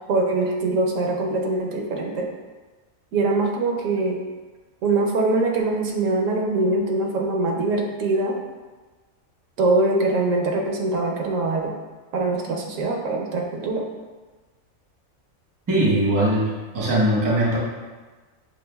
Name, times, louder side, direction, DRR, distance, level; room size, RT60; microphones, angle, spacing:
voice 1, 0.0-2.3 3.1-4.2 4.8-8.4 9.6-11.7 12.1-13.9, right 2 dB, 75° right, 1 dB, 0.9 m, -23 dB
voice 2, 15.7-17.6, right 1 dB, 20° right, -4 dB, 0.5 m, -20 dB
6.5 x 2.3 x 2.2 m, 1.3 s
omnidirectional pair, 1.4 m